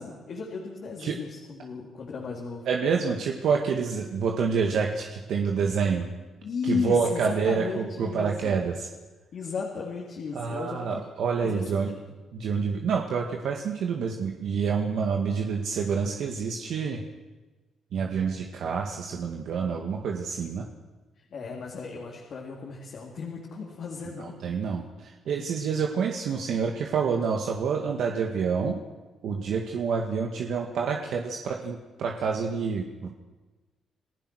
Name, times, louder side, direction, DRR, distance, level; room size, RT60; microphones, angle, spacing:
voice 1, 0.0-2.7 6.4-8.6 9.3-11.0 11.3-12.0 21.2-24.4, left 5 dB, 60° left, -2 dB, 3.6 m, -35 dB
voice 2, 2.7-6.0 6.7-8.9 10.4-11.9 12.3-17.0 17.9-20.7 24.2-28.8 29.2-33.1, right 6 dB, 70° right, 2 dB, 1.9 m, -28 dB
28.0 x 15.0 x 6.4 m, 1.2 s
cardioid pair, 90°, 0 cm